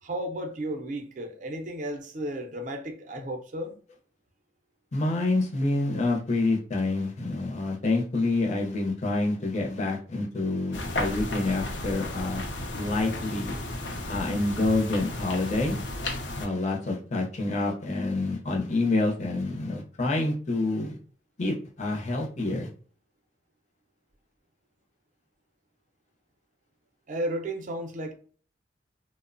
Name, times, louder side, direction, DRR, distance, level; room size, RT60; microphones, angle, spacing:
voice 1, 0.0-3.7 27.1-28.1, right 1 dB, 45° right, 0.5 m, -33 dB
voice 2, 4.9-12.4 12.8-13.5 14.1-15.8 16.4-21.0 21.4-22.7, left 2 dB, 40° left, 0.6 m, -27 dB
sound 1, 10.7-16.5, left 2 dB, 85° left, 0.5 m, -34 dB
2.7 x 2.0 x 2.5 m
head